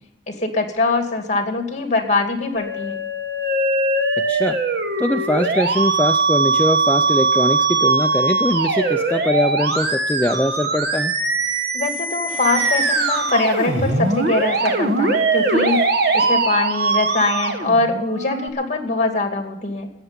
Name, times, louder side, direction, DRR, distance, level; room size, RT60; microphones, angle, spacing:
voice 1, 0.3-3.0 11.7-15.9 16.1-19.9, left 3 dB, 40° left, 4 dB, 2.4 m, -22 dB
Musical instrument, 2.6-18.5, right 3 dB, 55° right, 1.4 m, -21 dB
voice 2, 4.3-4.6 5.0-11.1, left 1 dB, 10° left, 3 dB, 0.5 m, -22 dB
sound 1, 12.3-16.6, right 2 dB, 75° right, 2.7 m, -40 dB
13.5 x 9.0 x 9.6 m, 0.84 s
head